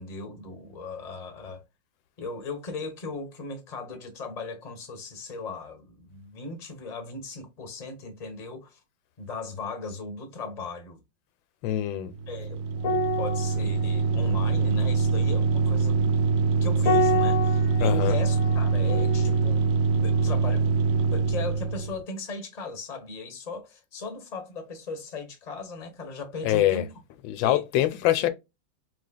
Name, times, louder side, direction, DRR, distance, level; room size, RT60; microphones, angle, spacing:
voice 1, 0.0-1.6 2.2-8.8 9.2-11.0 12.3-12.6 13.2-20.7 21.1-26.9 27.4-27.6, left 3 dB, 25° left, 1.0 m, -37 dB
voice 2, 11.6-12.1 17.8-18.2 26.4-26.8 27.3-28.3, left 13 dB, 80° left, 1.3 m, -24 dB
sound 1, 12.1-22.0, right 4 dB, 70° right, 1.0 m, -24 dB
sound 2, 12.8-21.5 21.8-22.0, left 1 dB, 55° left, 1.1 m, -31 dB
4.2 x 3.3 x 2.2 m
omnidirectional pair, 2.1 m